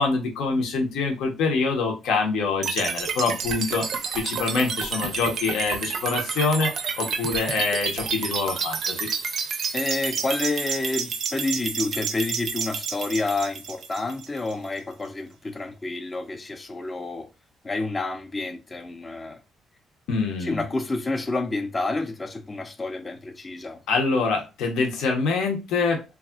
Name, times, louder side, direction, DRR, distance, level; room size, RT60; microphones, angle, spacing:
voice 1, 0.0-3.8 4.1-6.7 7.0-9.1 20.1-20.6 23.9-26.0, left 4 dB, 85° left, 0.7 m, -25 dB
sound 1, 2.6-14.6, right 6 dB, 55° right, 0.4 m, -30 dB
voice 2, 9.7-17.3 17.6-19.4 20.4-23.8, left 2 dB, 20° left, 0.3 m, -29 dB
3.4 x 2.3 x 2.2 m
cardioid pair, 145°, 0 cm